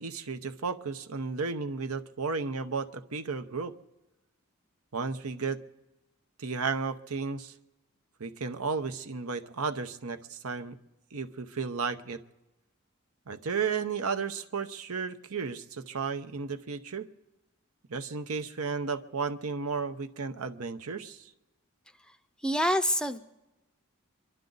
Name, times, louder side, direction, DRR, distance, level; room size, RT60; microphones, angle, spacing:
voice 1, 0.0-3.7 4.9-5.6 6.4-7.5 8.2-10.8 11.1-12.2 13.3-17.1 17.9-21.3, right 5 dB, 90° right, 9 dB, 0.9 m, -33 dB
voice 2, 22.0-23.2, equal, 5° left, 9 dB, 0.5 m, -28 dB
25.0 x 12.0 x 4.0 m, 0.97 s
head